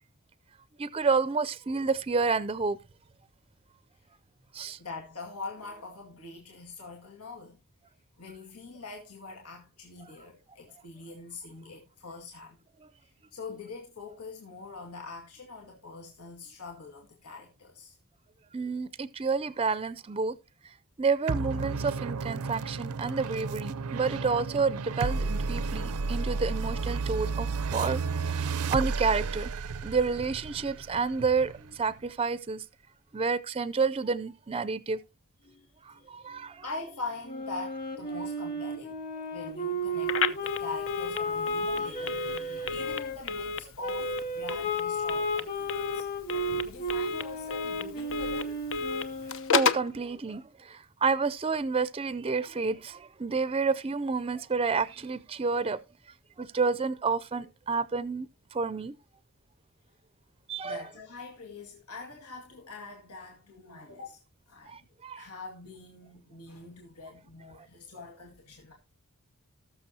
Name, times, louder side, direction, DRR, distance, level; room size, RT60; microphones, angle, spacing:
voice 1, 0.8-2.8 4.5-4.8 18.5-20.4 21.0-29.5 29.8-32.6 33.1-35.0 35.9-36.6 49.5-55.8 56.4-58.9 60.5-60.8 64.7-65.2, right 4 dB, 25° right, 0.5 m, -29 dB
voice 2, 4.8-7.6 8.2-12.6 13.0-17.9 35.4-39.0 39.3-46.1 46.4-48.6 60.6-64.2 64.5-64.9 65.2-68.7, left 3 dB, 85° left, 2.0 m, -43 dB
sound 1, 21.3-32.1, right 4 dB, 75° right, 0.6 m, -32 dB
Wind instrument woodwind instrument, 37.2-43.2 43.8-49.7, equal, 40° left, 3.0 m, -34 dB
Telephone, 40.0-49.9, left 5 dB, 60° left, 0.8 m, -33 dB
19.0 x 6.6 x 2.8 m
head